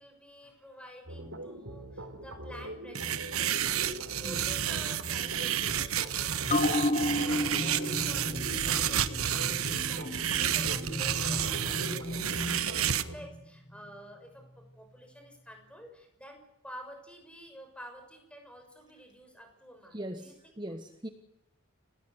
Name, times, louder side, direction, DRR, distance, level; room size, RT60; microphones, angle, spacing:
voice 1, 0.0-20.6, equal, 5° left, 4 dB, 6.2 m, -50 dB
sound 1, 1.1-13.2, right 1 dB, 70° right, 4.6 m, -42 dB
sound 2, 3.0-13.0, right 10 dB, 90° right, 1.2 m, -31 dB
sound 3, 6.5-13.4 13.7-13.8, left 1 dB, 35° left, 1.7 m, -33 dB
voice 2, 19.9-21.1, right 1 dB, 20° right, 8 dB, 1.2 m, -40 dB
29.0 x 18.0 x 8.1 m, 0.86 s
head